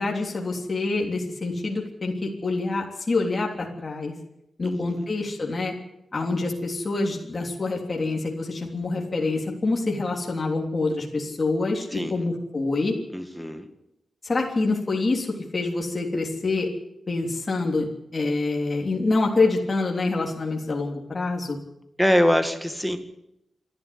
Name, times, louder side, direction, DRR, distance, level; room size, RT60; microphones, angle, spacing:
voice 1, 0.0-4.1 4.6-5.7 6.1-12.9 14.2-15.3 15.5-16.7 17.1-21.6, left 3 dB, 30° left, 0 dB, 3.3 m, -26 dB
voice 2, 4.6-5.0 11.9-12.3 13.1-13.7 22.0-23.0, equal, ahead, 7 dB, 1.9 m, -24 dB
28.0 x 11.5 x 9.7 m, 0.83 s
wide cardioid pair, 180°, 0 cm